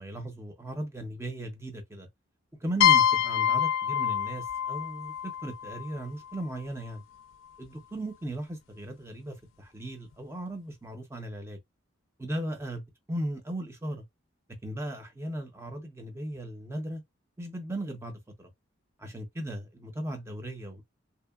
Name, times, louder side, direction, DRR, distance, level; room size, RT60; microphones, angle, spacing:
voice 1, 0.0-2.1 2.6-7.0 7.6-11.6 12.2-14.0 14.6-17.0 17.4-18.5 19.0-20.8, right 1 dB, 15° right, 0.5 m, -37 dB
sound 1, 2.8-6.4, left 9 dB, 90° left, 0.3 m, -26 dB
2.8 x 2.1 x 2.2 m
head